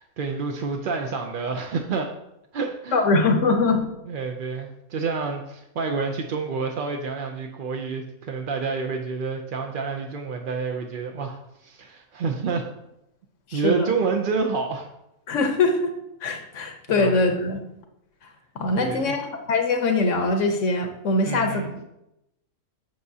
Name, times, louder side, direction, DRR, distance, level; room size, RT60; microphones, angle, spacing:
voice 1, 0.0-2.1 2.5-3.0 4.1-12.7 13.5-14.9 16.9-17.2 18.8-19.2 21.3-21.7, right 4 dB, 60° right, 3 dB, 0.5 m, -28 dB
voice 2, 2.9-3.9 13.5-13.9 15.3-17.6 18.5-21.7, left 3 dB, 65° left, 5 dB, 1.1 m, -22 dB
7.7 x 6.7 x 2.7 m, 0.85 s
omnidirectional pair, 1.5 m